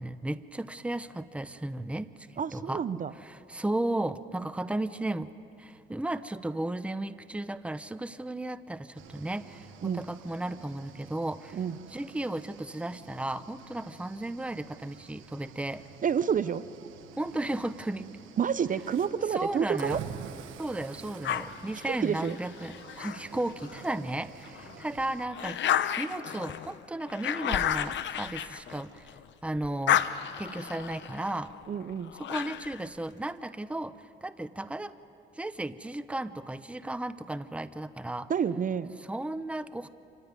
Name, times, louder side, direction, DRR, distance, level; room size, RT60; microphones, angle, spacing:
voice 1, 0.0-2.9 3.2-5.3 5.6-11.6 11.9-15.8 17.2-18.1 19.3-20.0 20.6-30.0 30.4-31.5 32.2-34.9 35.3-38.3 39.0-39.9, right 1 dB, 5° right, 12 dB, 0.7 m, -35 dB
voice 2, 2.4-3.1 9.8-10.0 11.5-11.8 16.0-16.7 18.4-20.0 21.9-22.4 31.7-32.1 38.3-38.9, right 7 dB, 40° right, 15 dB, 0.6 m, -29 dB
Cricket / Waves surf, 8.9-25.3, right 7 dB, 80° right, 1.3 m, -48 dB
sound 1, 21.2-23.9 24.4-29.3 29.6-32.9, left 10 dB, 65° left, 0.8 m, -32 dB
26.5 x 15.5 x 9.6 m, 2.9 s
cardioid pair, 90°, 20 cm